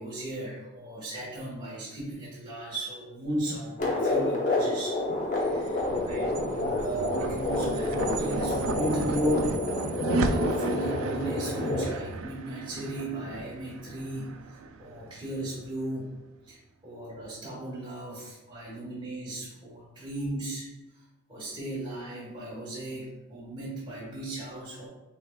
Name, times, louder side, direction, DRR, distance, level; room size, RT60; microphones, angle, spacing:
voice 1, 0.0-5.0 5.4-9.8 10.1-16.1 16.4-20.7 20.9-24.9, right 1 dB, 20° right, -7 dB, 1.3 m, -36 dB
sound 1, 3.8-11.9, left 2 dB, 35° left, 0.9 m, -29 dB
sound 2, 5.2-15.7, right 3 dB, 65° right, 0.4 m, -34 dB
6.0 x 3.3 x 2.4 m, 1.0 s
head